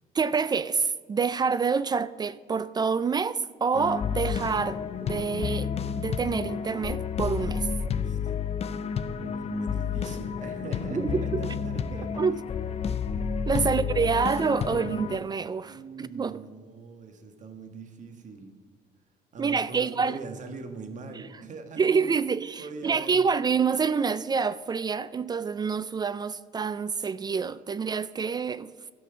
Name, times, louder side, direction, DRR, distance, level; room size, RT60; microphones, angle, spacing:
voice 1, 0.1-5.7 6.0-7.7 10.9-11.5 12.2-12.4 13.5-16.4 19.4-20.2 21.8-28.7, right 5 dB, 25° right, 0.3 m, -27 dB
sound 1, 3.7-15.2, left 7 dB, 40° left, 0.6 m, -31 dB
voice 2, 9.2-12.4 13.6-13.9 14.2-14.9 15.7-18.5 19.3-22.0 22.6-23.3, right 3 dB, 45° right, 1.5 m, -42 dB
12.0 x 6.1 x 6.1 m
cardioid pair, 110°, 17 cm